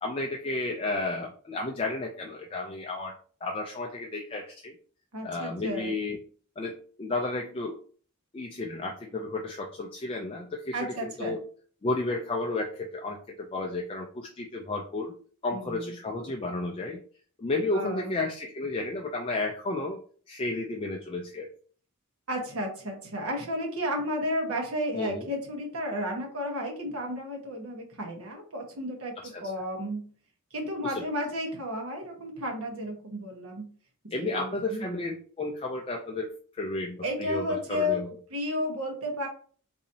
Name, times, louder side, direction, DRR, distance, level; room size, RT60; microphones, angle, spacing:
voice 1, 0.0-3.1 3.4-4.7 5.2-6.2 6.6-7.8 8.3-11.4 11.8-15.1 15.4-17.0 17.4-20.0 20.3-21.5 24.9-25.3 29.3-29.4 30.8-30.9 34.1-38.2, left 2 dB, 25° left, 0 dB, 0.4 m, -32 dB
voice 2, 5.1-5.9 10.7-11.4 15.5-15.9 17.7-18.1 22.3-30.0 30.5-33.6 34.0-35.0 37.0-38.0 38.3-39.3, left 1 dB, 75° right, 1 dB, 1.1 m, -32 dB
4.0 x 2.7 x 2.7 m, 0.44 s
head